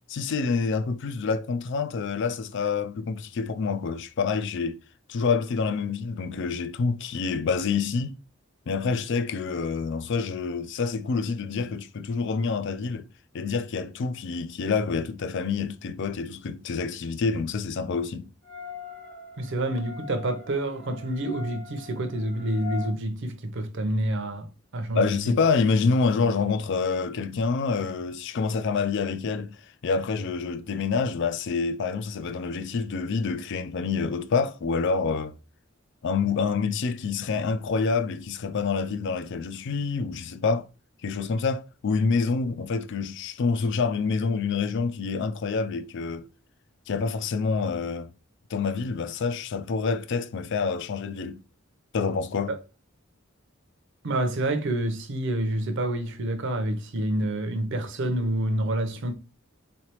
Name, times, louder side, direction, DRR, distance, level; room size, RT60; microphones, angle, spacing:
voice 1, 0.1-4.8 5.1-8.1 8.7-13.1 13.3-18.3 24.9-29.6 29.8-35.4 36.0-40.7 41.0-46.3 46.9-48.1 48.5-51.4 51.9-52.5, left 4 dB, 60° left, 0.4 m, -27 dB
sound 1, 18.4-22.9, left 6 dB, 40° left, 1.5 m, -42 dB
voice 2, 19.4-25.4 52.5-52.6 54.0-59.1, right 1 dB, 60° right, 0.7 m, -28 dB
3.9 x 3.2 x 2.9 m
head